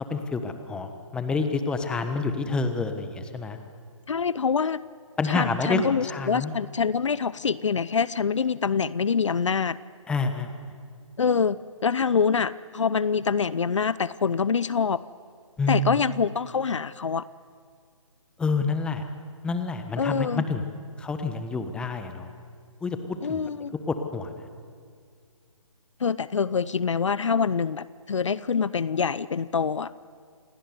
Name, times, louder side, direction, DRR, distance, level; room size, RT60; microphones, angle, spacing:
voice 1, 0.1-3.6 5.2-6.6 10.1-10.5 15.6-16.0 18.4-19.0 19.4-20.6 21.0-22.3 22.8-23.4 23.9-24.5, left 3 dB, 5° left, 8 dB, 1.3 m, -28 dB
voice 2, 4.1-4.8 5.3-9.8 11.2-11.6 11.8-15.0 15.7-17.2 20.0-20.4 23.2-23.7 26.0-30.1, left 6 dB, 60° left, 18 dB, 0.7 m, -25 dB
28.5 x 18.5 x 9.6 m, 2.1 s
figure-of-eight pair, 150°, 17 cm